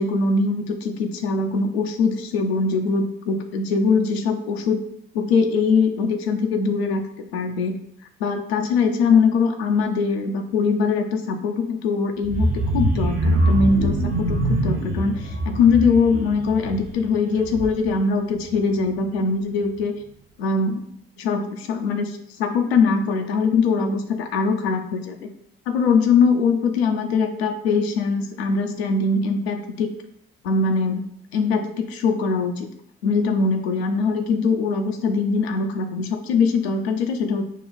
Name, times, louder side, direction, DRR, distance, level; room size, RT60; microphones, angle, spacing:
voice 1, 0.0-4.8 5.1-7.0 7.3-7.8 8.2-19.9 20.4-20.8 21.2-22.1 22.4-25.3 25.7-29.9 30.4-31.0 31.3-32.7 33.0-37.4, left 4 dB, 80° left, 5 dB, 0.6 m, -22 dB
sound 1, 12.2-18.0 18.4-18.6 19.0-19.1, right 1 dB, 55° right, 1.0 m, -24 dB
5.0 x 2.3 x 4.0 m, 0.69 s
figure-of-eight pair, 50°, 31 cm